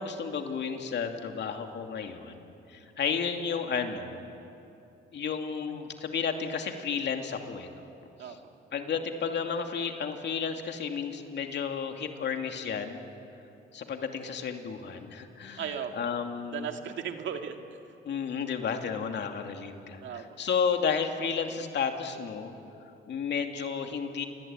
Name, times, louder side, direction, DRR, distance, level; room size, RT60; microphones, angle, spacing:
voice 1, 0.0-2.4 2.7-4.2 5.1-7.8 8.2-8.4 8.7-13.0 13.7-16.7 18.0-22.5 23.1-24.2, left 6 dB, 60° left, 4 dB, 2.6 m, -32 dB
voice 2, 15.6-15.9 16.5-17.8 20.0-20.4, right 8 dB, 70° right, 5 dB, 2.1 m, -36 dB
28.5 x 22.5 x 9.0 m, 2.8 s
cardioid pair, 90°, 20 cm